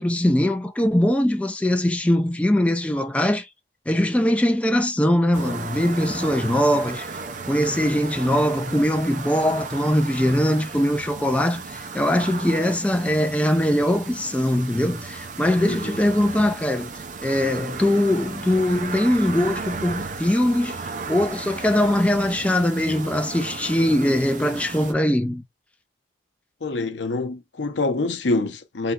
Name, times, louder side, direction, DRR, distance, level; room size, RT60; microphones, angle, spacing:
voice 1, 0.0-3.5 3.9-7.1 7.5-16.9 17.2-25.4, left 1 dB, 5° left, 0.3 m, -21 dB
sound 1, 5.3-24.9, right 4 dB, 45° right, 0.5 m, -35 dB
voice 2, 26.6-28.9, left 2 dB, 90° left, 0.7 m, -26 dB
3.4 x 2.7 x 2.3 m
head